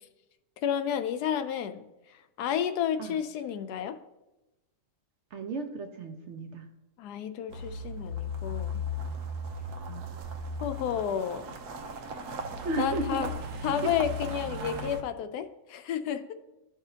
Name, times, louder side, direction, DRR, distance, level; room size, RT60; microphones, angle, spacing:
voice 1, 0.6-1.8 2.4-4.0 7.0-8.8 10.6-11.5 12.8-13.3 13.6-16.3, left 8 dB, 80° left, 10 dB, 1.1 m, -31 dB
voice 2, 5.3-6.6 9.9-10.1 12.6-13.2 13.8-13.9, right 2 dB, 55° right, 6 dB, 0.9 m, -34 dB
sound 1, 7.5-15.0, left 1 dB, 75° right, 1.3 m, -36 dB
12.5 x 4.9 x 2.8 m, 0.96 s
omnidirectional pair, 1.7 m